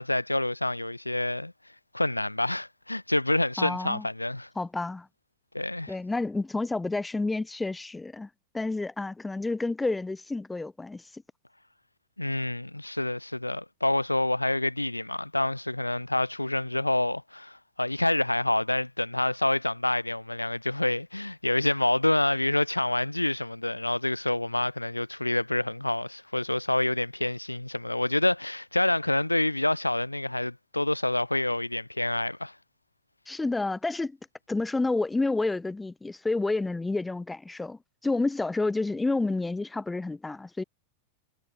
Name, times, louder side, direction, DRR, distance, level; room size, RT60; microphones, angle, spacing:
voice 1, 0.0-1.5 1.9-4.5 5.5-5.9 12.2-32.5, left 1 dB, 85° left, 0.4 m, -27 dB
voice 2, 3.6-4.1 4.6-5.1 5.9-8.3 8.5-11.2 33.3-34.2 34.5-40.6, left 3 dB, 10° left, 0.4 m, -29 dB
figure-of-eight pair, 90°, 0 cm